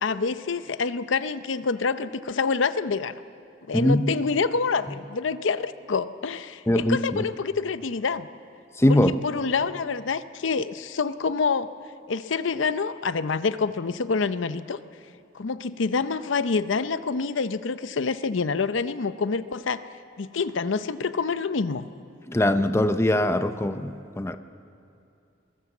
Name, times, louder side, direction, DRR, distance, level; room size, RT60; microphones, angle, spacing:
voice 1, 0.0-3.1 3.7-8.3 8.9-11.7 12.1-14.8 15.3-19.8 20.2-21.9, left 4 dB, 80° left, 13 dB, 0.6 m, -27 dB
voice 2, 3.7-4.1 6.7-7.2 8.8-9.1 22.3-24.4, left 1 dB, 15° left, 10 dB, 0.6 m, -22 dB
21.5 x 19.0 x 7.2 m, 2.6 s
head